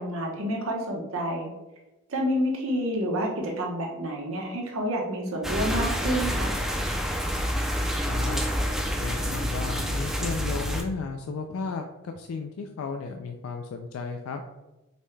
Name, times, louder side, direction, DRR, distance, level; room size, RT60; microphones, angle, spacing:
voice 1, 0.0-1.5 2.1-6.5, equal, 75° right, 0 dB, 0.9 m, -29 dB
sound 1, 5.4-10.8, equal, ahead, 0.3 m, -28 dB
voice 2, 8.1-8.4 9.0-14.4, left 4 dB, 75° left, 4 dB, 0.3 m, -34 dB
5.3 x 2.2 x 3.2 m, 1.0 s
head